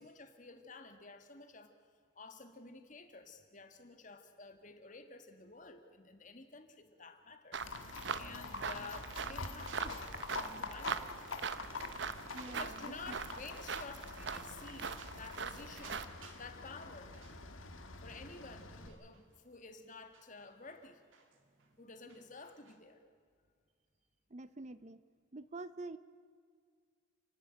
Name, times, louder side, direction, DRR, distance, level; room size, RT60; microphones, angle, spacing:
voice 1, 0.0-1.7 2.2-7.6 7.8-11.1 12.5-16.0 16.3-17.2 18.0-21.0 21.8-23.0, left 3 dB, 40° left, 7 dB, 1.8 m, -52 dB
sound 1, 7.5-16.0, right 5 dB, 60° right, 0.8 m, -42 dB
Livestock farm animals working animals, 7.6-18.9, left 3 dB, 90° left, 1.7 m, -46 dB
sound 2, 8.7-11.2 11.5-13.5 14.1-14.3 14.6-16.5 16.8-18.1 18.7-22.8, right 5 dB, 85° right, 2.6 m, -59 dB
voice 2, 12.3-13.2 24.3-25.0 25.3-26.0, right 2 dB, 35° right, 14 dB, 0.5 m, -47 dB
29.5 x 11.5 x 9.0 m, 2.1 s
head